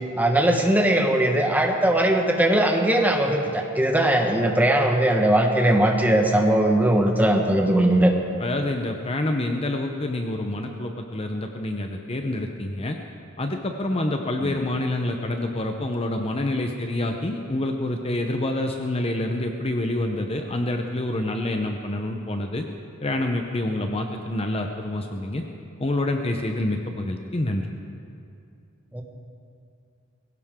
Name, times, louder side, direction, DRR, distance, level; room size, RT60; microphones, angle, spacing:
voice 1, 0.1-8.1 14.4-14.5 28.9-29.0, right 1 dB, 10° right, 2 dB, 1.3 m, -20 dB
voice 2, 8.4-13.0 13.4-22.6 23.0-25.4 25.8-27.6, left 1 dB, 30° left, 4 dB, 0.8 m, -27 dB
21.0 x 17.0 x 3.7 m, 2.4 s
head